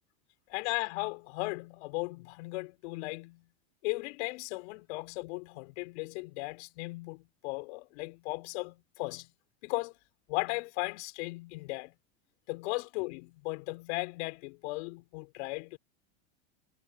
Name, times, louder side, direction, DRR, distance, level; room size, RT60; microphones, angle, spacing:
voice 1, 0.5-3.5 3.8-9.3 9.6-9.9 10.3-11.9 12.5-15.8, left 26 dB, 65° left, 5.4 m, -36 dB
supercardioid pair, 120°, 35 cm